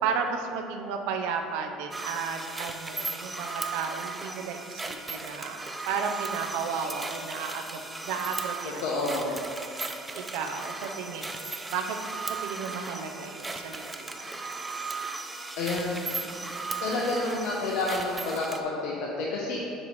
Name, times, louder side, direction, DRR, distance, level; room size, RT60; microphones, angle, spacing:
voice 1, 0.0-8.8 9.3-9.4 10.1-12.0 12.2-14.3, right 6 dB, 80° right, 5 dB, 0.6 m, -34 dB
sound 1, 1.9-18.6, right 3 dB, 15° right, 0.4 m, -36 dB
voice 2, 8.8-9.3 15.6-16.3 16.8-19.6, left 2 dB, 80° left, -4 dB, 0.9 m, -29 dB
7.6 x 3.1 x 5.5 m, 2.5 s
cardioid pair, 125°, 0 cm